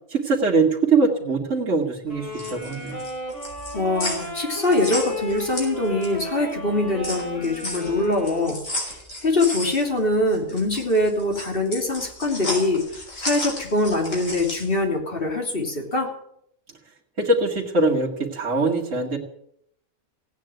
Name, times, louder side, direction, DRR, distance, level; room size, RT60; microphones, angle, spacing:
voice 1, 0.1-3.1 17.2-19.2, right 3 dB, 65° right, -3 dB, 2.5 m, -22 dB
sound 1, 2.1-6.3 6.6-14.8, left 1 dB, 70° left, 5.7 m, -33 dB
sound 2, 2.1-8.6, equal, 30° left, 5.5 m, -34 dB
voice 2, 3.7-16.1, left 2 dB, 45° left, 1 dB, 3.4 m, -23 dB
16.5 x 9.4 x 9.1 m, 0.73 s
omnidirectional pair, 1.4 m